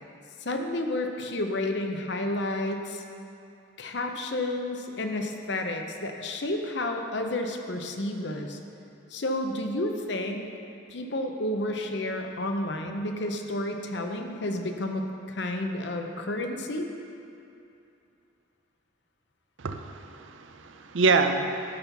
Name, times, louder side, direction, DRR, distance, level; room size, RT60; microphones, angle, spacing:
voice 1, 0.4-3.0 3.8-8.6 9.1-10.5 10.9-16.9, left 1 dB, 60° left, 4 dB, 0.7 m, -31 dB
voice 2, 19.6-21.8, right 4 dB, 75° right, 7 dB, 0.6 m, -26 dB
11.5 x 4.3 x 5.8 m, 2.7 s
head